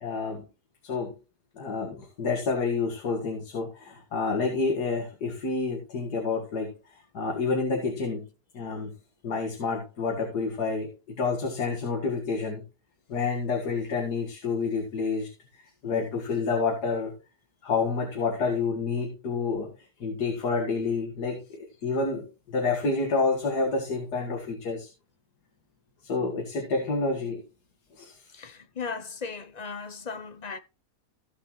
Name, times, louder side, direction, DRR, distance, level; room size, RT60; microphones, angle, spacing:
voice 1, 0.0-0.4 0.8-1.1 1.6-8.3 8.5-8.9 9.2-12.6 13.1-17.1 17.6-19.7 20.0-24.9 26.0-27.4 28.0-28.4, left 4 dB, 80° left, 2.1 m, -29 dB
voice 2, 28.3-30.6, left 5 dB, 40° left, 0.6 m, -37 dB
15.5 x 6.2 x 3.0 m
omnidirectional pair, 1.7 m